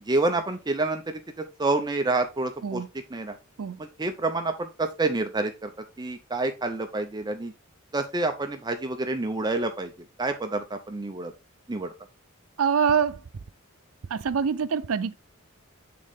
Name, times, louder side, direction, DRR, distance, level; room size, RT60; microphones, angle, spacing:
voice 1, 0.1-1.2 1.6-2.8 3.1-3.4 3.8-5.7 6.0-7.5 7.9-9.9 10.2-11.3 11.7-11.9, right 2 dB, 20° right, 0.6 m, -28 dB
voice 2, 12.6-13.2 14.1-15.1, right 6 dB, 85° right, 0.5 m, -25 dB
8.5 x 3.8 x 3.5 m
head